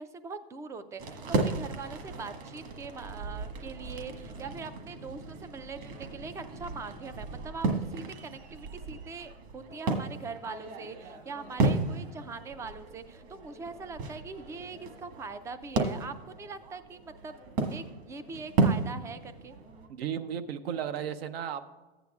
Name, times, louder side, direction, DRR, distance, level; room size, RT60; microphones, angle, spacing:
voice 1, 0.0-17.4 17.7-19.6, right 4 dB, 10° right, 11 dB, 0.3 m, -42 dB
sound 1, 1.0-19.9, right 3 dB, 45° right, 1.5 m, -34 dB
voice 2, 19.9-21.6, right 8 dB, 75° right, 10 dB, 0.8 m, -34 dB
14.5 x 9.1 x 2.3 m, 1.2 s
hypercardioid pair, 120°, 31 cm